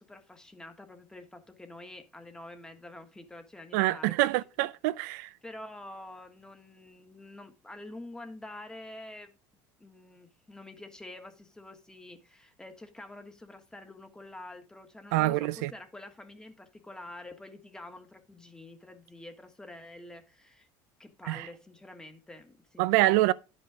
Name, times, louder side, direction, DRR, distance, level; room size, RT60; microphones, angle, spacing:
voice 1, 0.0-4.7 5.4-9.4 9.8-20.7 21.0-23.3, left 2 dB, 10° left, 1.5 m, -47 dB
voice 2, 3.7-5.3 15.1-15.7 21.3-21.5 22.8-23.3, right 18 dB, 90° right, 0.5 m, -25 dB
11.0 x 5.5 x 4.9 m
cardioid pair, 140°, 9 cm